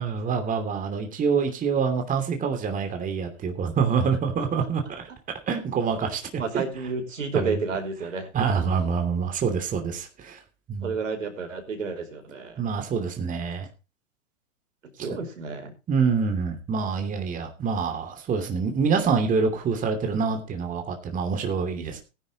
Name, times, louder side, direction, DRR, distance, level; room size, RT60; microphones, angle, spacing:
voice 1, 0.0-5.1 5.5-6.6 7.3-7.6 8.3-10.4 10.7-11.0 12.6-13.7 15.0-15.2 15.9-22.0, right 5 dB, 20° right, 5 dB, 2.9 m, -26 dB
voice 2, 6.4-8.3 10.8-12.5 15.0-15.7 21.7-21.9, right 4 dB, 85° right, 4 dB, 5.1 m, -31 dB
18.0 x 10.5 x 3.0 m, 0.30 s
hypercardioid pair, 120°, 38 cm